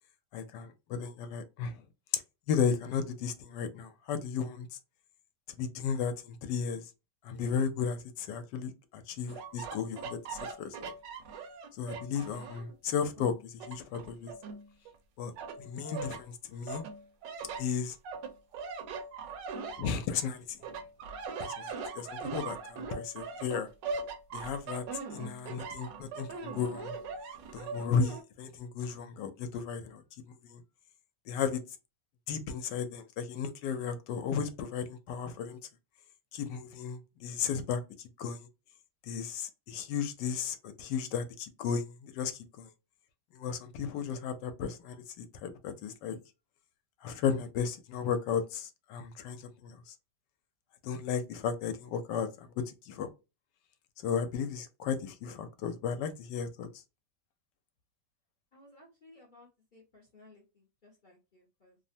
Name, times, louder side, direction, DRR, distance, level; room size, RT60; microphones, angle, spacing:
voice 1, 0.3-1.8 2.1-2.2 2.5-4.7 5.6-6.8 7.2-10.9 11.8-14.3 15.2-15.3 15.6-16.8 17.6-18.0 19.8-20.6 21.4-23.7 24.3-24.8 25.1-26.9 27.5-30.0 30.3-30.6 31.3-31.6 32.3-35.6 36.3-37.8 38.2-38.5 39.0-42.3 42.6-42.7 43.3-46.2 47.0-49.9 50.8-52.3 52.9-53.1 54.0-56.7, left 6 dB, 75° left, 1.2 m, -34 dB
sound 1, 9.3-12.7 13.2-15.0 15.4-16.2 16.7-20.3 20.6-28.2, right 4 dB, 80° right, 1.3 m, -41 dB
voice 2, 58.5-61.8, left 2 dB, 45° left, 0.6 m, -59 dB
3.3 x 2.0 x 2.6 m
omnidirectional pair, 1.9 m